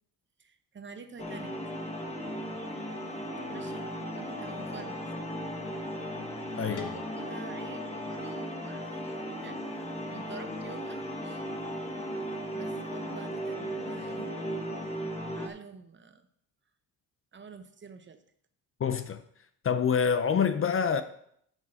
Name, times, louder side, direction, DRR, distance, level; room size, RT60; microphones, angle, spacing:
voice 1, 0.4-1.7 3.5-5.3 6.5-11.4 12.5-14.3 15.3-16.3 17.3-18.2, right 5 dB, 30° right, 0.9 m, -48 dB
sound 1, 1.2-15.5, equal, 15° left, 1.2 m, -36 dB
sound 2, 6.8-9.6, left 7 dB, 55° left, 1.5 m, -47 dB
voice 2, 18.8-19.2 19.6-21.0, left 7 dB, 35° left, 0.6 m, -26 dB
8.4 x 6.4 x 5.0 m
cardioid pair, 125°, 36 cm